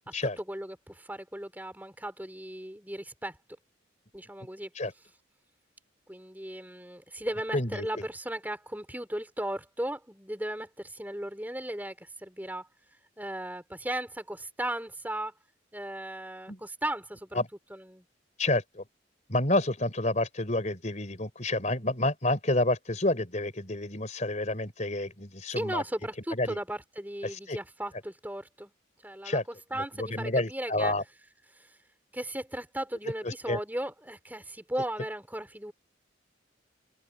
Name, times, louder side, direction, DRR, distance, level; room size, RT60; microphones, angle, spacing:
voice 1, 0.1-3.4 4.1-4.7 6.1-12.7 13.2-15.3 15.7-17.4 17.7-18.0 25.5-28.7 29.0-29.4 29.7-30.9 31.5-31.8 32.1-35.7, right 1 dB, 10° right, 4.1 m, -36 dB
voice 2, 7.5-8.1 16.5-16.6 17.3-17.5 18.4-18.8 19.3-25.8 26.3-26.6 27.2-27.6 29.2-29.4 29.7-31.0 33.2-33.6, left 2 dB, 35° left, 4.1 m, -29 dB
open air
head